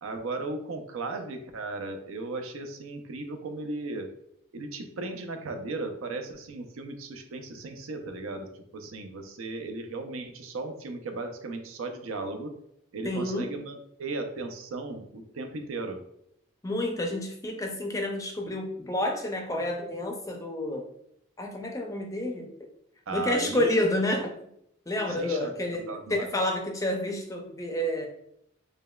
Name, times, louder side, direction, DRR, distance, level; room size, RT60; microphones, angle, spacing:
voice 1, 0.0-4.1 4.5-8.5 8.7-12.5 12.9-16.0 23.1-23.7 25.2-26.3, right 3 dB, 80° right, 5 dB, 0.5 m, -36 dB
voice 2, 13.0-13.5 16.6-20.9 21.4-22.5 23.1-24.3 24.9-28.1, left 1 dB, 15° left, 2 dB, 0.4 m, -29 dB
5.0 x 2.1 x 2.2 m, 0.75 s
head